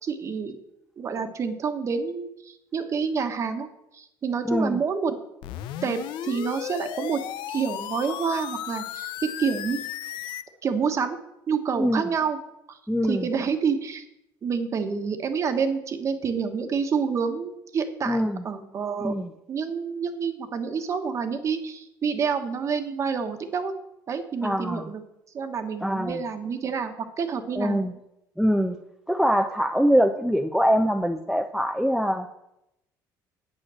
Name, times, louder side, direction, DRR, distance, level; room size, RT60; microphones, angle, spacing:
voice 1, 0.0-0.6 1.0-3.7 3.9-5.2 5.8-7.2 7.5-9.8 10.6-11.2 11.5-12.4 12.7-14.0 14.4-18.2 18.4-19.1 19.5-23.8 24.1-25.0 25.3-27.8, right 6 dB, 40° right, 7 dB, 1.3 m, -28 dB
voice 2, 4.4-4.8 11.8-12.0 12.9-13.3 18.1-18.4 19.0-19.3 24.4-24.9 25.8-26.2 27.6-27.9 28.4-28.8 29.1-32.3, equal, ahead, 4 dB, 0.5 m, -23 dB
sound 1, 5.4-10.4, left 12 dB, 75° left, 0.6 m, -35 dB
8.8 x 8.3 x 6.3 m, 0.84 s
cardioid pair, 130°, 8 cm